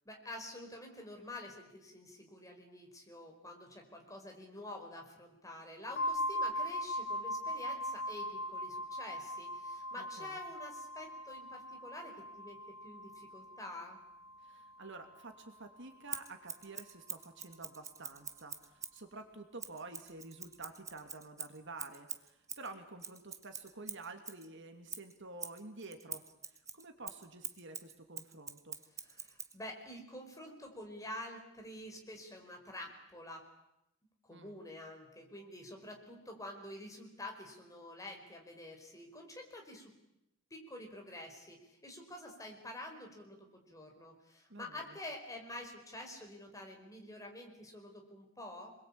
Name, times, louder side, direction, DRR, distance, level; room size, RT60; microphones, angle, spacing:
voice 1, 0.0-14.0 29.0-33.4 34.2-39.9 40.5-48.7, left 1 dB, 15° left, 2 dB, 5.0 m, -48 dB
sound 1, 6.0-15.6, equal, 45° left, 1.5 m, -40 dB
voice 2, 10.0-10.4 14.4-28.8 34.3-34.6 44.5-45.0, right 3 dB, 55° right, 6 dB, 2.7 m, -50 dB
Scissors, 16.1-19.0 19.6-24.5 24.9-29.6, right 6 dB, 15° right, 1.2 m, -45 dB
27.5 x 21.5 x 8.7 m, 0.85 s
head